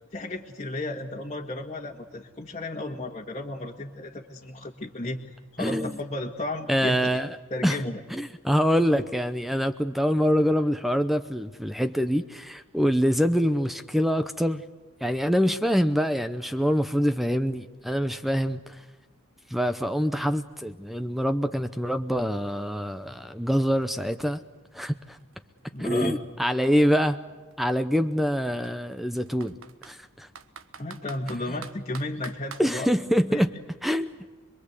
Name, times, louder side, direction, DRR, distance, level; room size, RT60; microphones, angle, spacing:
voice 1, 0.1-5.3 5.5-7.2 7.5-8.0 25.7-26.2 30.8-32.9 33.3-33.4, left 2 dB, 35° left, -2 dB, 1.7 m, -33 dB
voice 2, 5.6-5.9 6.7-7.4 7.6-7.8 8.1-14.6 15.0-18.8 19.5-24.4 24.7-25.2 25.8-27.2 27.6-29.5 29.8-30.3 32.6-33.5 33.8-34.1, equal, ahead, 9 dB, 0.7 m, -25 dB
Computer keyboard, 24.4-24.5 24.8-26.7 27.5-27.6 28.0-28.1 28.6-30.0 30.4-32.7, right 6 dB, 70° right, 1.3 m, -45 dB
26.0 x 22.5 x 8.2 m, 1.3 s
head